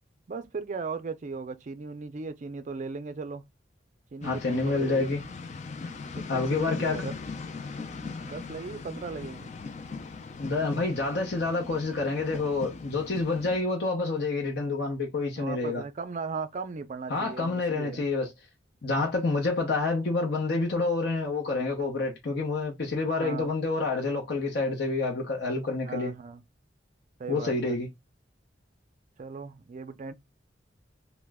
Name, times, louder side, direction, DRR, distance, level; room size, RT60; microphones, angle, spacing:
voice 1, 0.3-3.4 4.1-5.1 6.2-7.1 8.2-9.5 15.4-18.1 23.1-23.5 25.8-26.4 27.2-27.8 29.2-30.1, right 4 dB, 40° right, 0.4 m, -37 dB
voice 2, 4.2-5.2 6.3-7.1 10.4-15.8 17.1-18.3 18.8-26.1 27.3-27.9, left 3 dB, 60° left, 0.7 m, -28 dB
sound 1, 4.2-13.6, left 4 dB, 40° left, 0.4 m, -40 dB
3.0 x 2.1 x 3.4 m
head